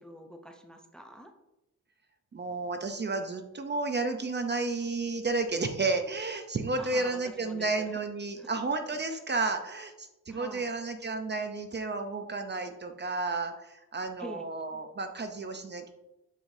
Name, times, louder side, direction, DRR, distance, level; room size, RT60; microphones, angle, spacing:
voice 1, 0.0-1.3 6.8-7.8 8.4-8.5 10.3-10.7 14.2-14.5, equal, ahead, 4 dB, 0.7 m, -45 dB
voice 2, 2.3-15.9, right 3 dB, 35° right, 6 dB, 0.7 m, -32 dB
10.5 x 5.0 x 2.7 m, 0.92 s
cardioid pair, 100°, 32 cm